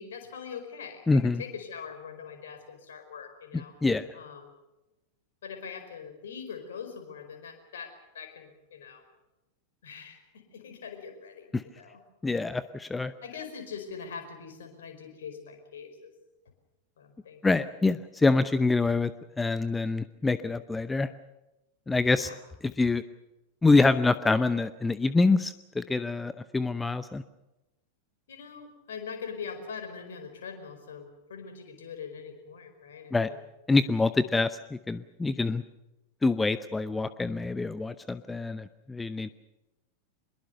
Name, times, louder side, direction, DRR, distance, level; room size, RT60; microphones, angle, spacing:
voice 1, 0.0-3.8 4.1-4.5 5.4-9.0 9.8-12.4 13.2-16.1 17.0-17.4 18.7-18.8 22.1-22.4 28.3-33.4, left 6 dB, 60° left, 6 dB, 5.0 m, -42 dB
voice 2, 1.1-1.4 3.8-4.1 11.5-11.6 12.2-13.1 17.4-19.1 19.4-21.1 21.9-22.3 22.8-23.0 23.6-27.2 33.1-33.3 33.7-35.6 36.2-39.3, left 3 dB, 10° left, 14 dB, 0.7 m, -25 dB
24.5 x 22.0 x 6.8 m, 1.0 s
figure-of-eight pair, 90°, 0 cm